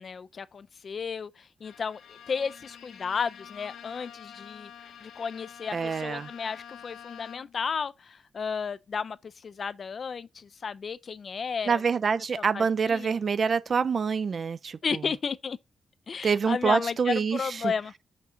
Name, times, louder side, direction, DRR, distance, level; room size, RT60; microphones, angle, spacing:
voice 1, 0.0-4.7 5.0-11.8 12.5-13.1 14.8-15.6 16.1-18.0, left 6 dB, 45° left, 0.4 m, -33 dB
Bowed string instrument, 1.6-7.7, left 8 dB, 85° left, 1.0 m, -48 dB
voice 2, 5.7-6.3 11.7-15.0 16.2-17.7, right 6 dB, 45° right, 0.3 m, -26 dB
6.1 x 5.9 x 2.6 m
wide cardioid pair, 150°, 0 cm